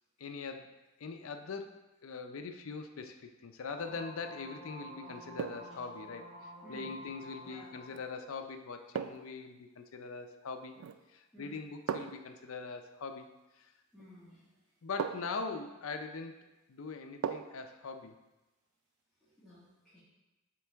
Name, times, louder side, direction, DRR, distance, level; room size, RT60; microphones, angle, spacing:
voice 1, 0.2-10.8 11.1-13.3 13.6-13.7 14.8-16.4 16.7-18.2, left 4 dB, 65° left, 6 dB, 0.5 m, -42 dB
sound 1, 3.7-8.2, equal, 40° right, 1.3 m, -50 dB
sound 2, 3.8-4.2 5.4-5.8 7.9-8.1 8.9-9.4 10.7-11.1 11.9-12.3 14.0-14.1 15.0-15.5 17.2-17.7 18.1-18.2, right 7 dB, 70° right, 0.3 m, -39 dB
voice 2, 6.6-6.9 7.4-7.7 11.3-11.6 13.9-14.5 19.3-20.0, equal, ahead, -13 dB, 1.7 m, -54 dB
7.6 x 3.8 x 3.5 m, 1.1 s
head